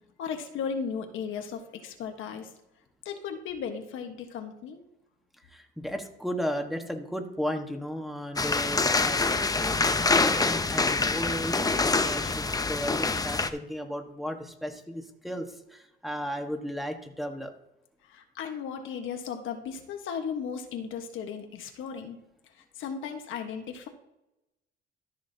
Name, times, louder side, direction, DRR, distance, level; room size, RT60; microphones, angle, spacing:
voice 1, 0.2-2.5 3.0-4.8 18.0-22.2 22.5-23.9, left 6 dB, 85° left, 5 dB, 1.3 m, -36 dB
voice 2, 5.5-17.5, equal, ahead, 3 dB, 1.4 m, -35 dB
sound 1, 8.4-13.5, left 3 dB, 20° left, 0.7 m, -25 dB
13.5 x 6.3 x 2.8 m, 0.91 s
cardioid pair, 90°, 20 cm